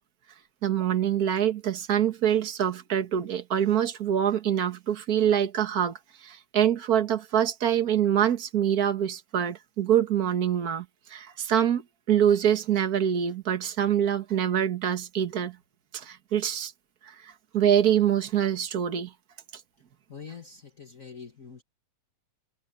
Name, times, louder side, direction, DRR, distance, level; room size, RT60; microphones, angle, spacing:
voice 1, 0.6-11.8 12.1-15.6 15.9-16.7 17.0-19.1, right 9 dB, 60° right, 0.9 m, -25 dB
voice 2, 20.1-21.6, left 6 dB, 45° left, 1.1 m, -44 dB
omnidirectional pair, 4.0 m